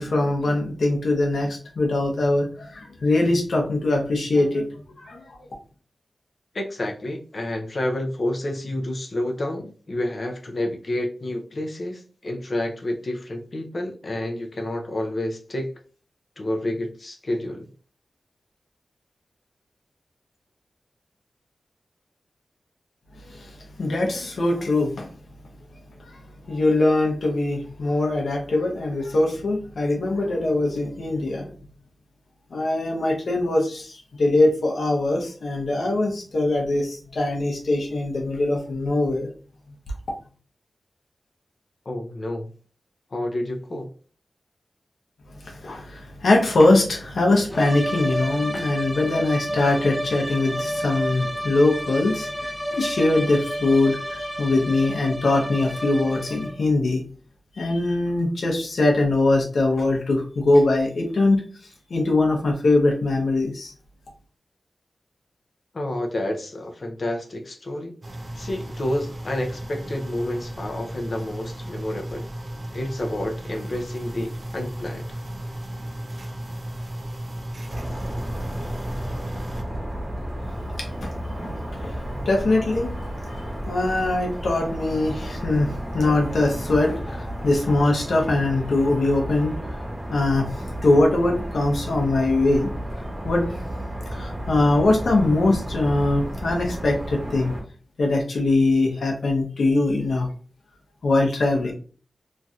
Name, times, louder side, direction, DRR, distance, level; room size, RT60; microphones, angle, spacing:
voice 1, 0.0-4.7 5.0-5.4 23.2-25.1 26.0-26.2 26.5-31.5 32.5-39.3 45.4-57.0 57.6-61.4 61.9-63.7 80.8-89.8 90.1-90.5 90.8-92.7 93.2-93.5 94.1-97.5 98.0-100.3 101.0-101.7, left 2 dB, 80° left, 1 dB, 0.7 m, -22 dB
voice 2, 6.5-15.7 16.4-17.7 41.9-42.5 43.1-43.9 65.7-68.0 68.4-72.2 72.7-75.2, left 1 dB, 50° left, 2 dB, 0.5 m, -29 dB
sound 1, 47.5-56.7, equal, 5° left, 0.5 m, -31 dB
sound 2, 68.0-79.6, right 1 dB, 45° right, 0.6 m, -35 dB
sound 3, 77.7-97.6, equal, 25° right, 1.0 m, -32 dB
3.0 x 2.6 x 2.4 m, 0.40 s
wide cardioid pair, 110°, 0 cm